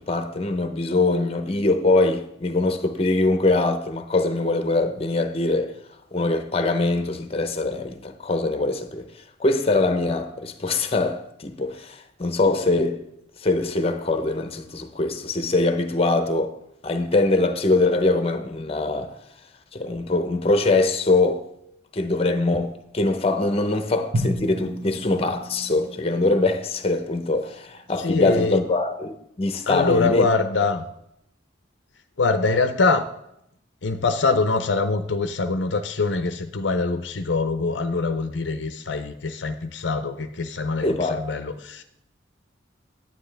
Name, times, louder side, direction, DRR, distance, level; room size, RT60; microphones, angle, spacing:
voice 1, 0.0-5.7 6.1-9.1 9.4-13.0 13.4-16.6 16.8-19.2 19.7-21.4 21.9-30.3 40.8-41.3, left 2 dB, 30° left, 0.8 m, -23 dB
Drum, 24.1-27.1, equal, 65° right, 1.3 m, -32 dB
voice 2, 28.0-28.6 29.7-30.8 32.2-33.1 33.8-41.8, left 3 dB, 65° left, 0.6 m, -24 dB
9.6 x 9.3 x 3.4 m
head